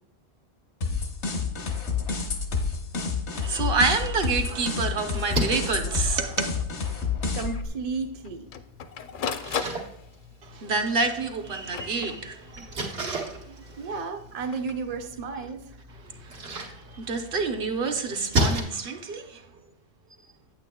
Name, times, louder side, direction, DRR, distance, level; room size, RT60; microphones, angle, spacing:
sound 1, 0.8-7.7, left 5 dB, 90° left, 1.3 m, -29 dB
voice 1, 3.3-6.6 10.4-13.2 13.5-13.6 16.2-19.4, right 4 dB, 60° right, 0.9 m, -28 dB
Splash splatter, 5.1-18.6, right 1 dB, 85° right, 1.6 m, -35 dB
Printer, 5.7-5.8 6.1-6.2 6.6-6.7 7.4-7.6 8.2-10.4 11.2-12.6 14.3-14.7, left 7 dB, 60° left, 0.6 m, -36 dB
voice 2, 7.3-8.5 13.8-15.7, right 4 dB, 45° right, 0.6 m, -33 dB
9.0 x 8.4 x 2.2 m
omnidirectional pair, 1.1 m